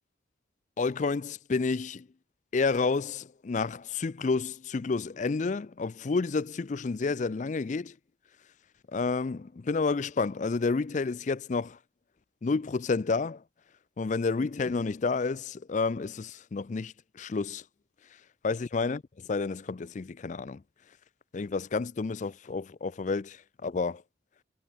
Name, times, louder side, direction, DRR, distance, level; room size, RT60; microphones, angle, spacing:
voice 1, 0.8-2.1 2.5-8.0 8.9-11.8 12.4-13.4 14.0-17.6 18.4-20.6 21.3-24.0, left 4 dB, 40° left, 0.4 m, -30 dB
head